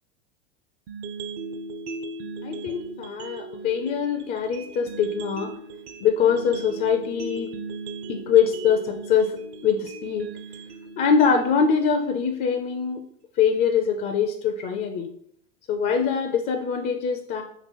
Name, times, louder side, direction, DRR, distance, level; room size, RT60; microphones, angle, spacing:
sound 1, 0.9-12.9, right 3 dB, 50° right, 0.6 m, -38 dB
voice 1, 2.4-5.5 6.0-7.5 8.1-9.3 9.6-10.3 11.0-13.1 13.4-15.1 15.7-17.4, left 7 dB, 30° left, 4 dB, 0.4 m, -23 dB
3.1 x 3.1 x 4.2 m, 0.68 s
hypercardioid pair, 100°, 35 cm